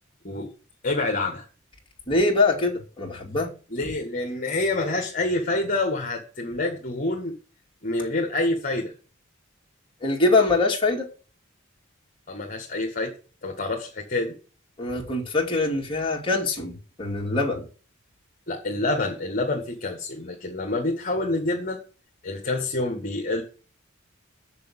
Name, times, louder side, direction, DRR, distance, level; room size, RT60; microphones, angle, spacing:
voice 1, 0.8-1.5 3.7-7.4 7.8-8.9 12.3-13.1 13.4-14.3 18.5-21.8 22.2-23.4, left 2 dB, 40° left, 1.9 m, -27 dB
voice 2, 2.1-3.5 10.0-11.1 14.8-17.6, left 3 dB, 25° left, 2.6 m, -23 dB
7.1 x 6.8 x 8.1 m
head